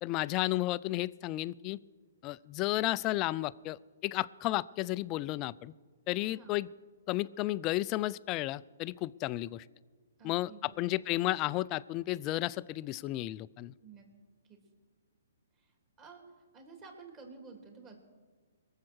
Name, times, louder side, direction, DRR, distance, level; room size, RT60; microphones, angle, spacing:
voice 1, 0.0-1.8 2.2-5.7 6.1-6.7 7.1-9.6 10.2-13.7, left 17 dB, 30° left, 18 dB, 0.4 m, -33 dB
voice 2, 6.2-6.6 10.2-11.2 13.8-14.1 14.5-14.6 15.6-15.7 16.0-16.2 16.5-18.0, right 4 dB, 25° right, 3 dB, 3.1 m, -52 dB
22.0 x 7.4 x 6.3 m, 1.5 s
hypercardioid pair, 140°, 0 cm